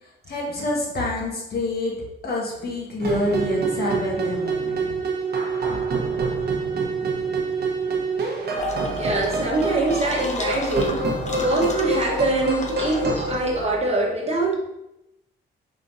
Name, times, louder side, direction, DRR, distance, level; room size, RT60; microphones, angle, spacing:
voice 1, 0.2-2.0 2.2-4.9, left 2 dB, 50° left, -2 dB, 1.5 m, -27 dB
sound 1, 3.0-13.4, right 3 dB, 55° right, 1.1 m, -26 dB
sound 2, 8.6-13.7, left 3 dB, 35° left, 0.8 m, -33 dB
voice 2, 9.0-11.1 11.4-14.6, right 3 dB, 30° right, -3 dB, 1.3 m, -24 dB
5.3 x 3.6 x 2.7 m, 0.89 s
cardioid pair, 90°, 20 cm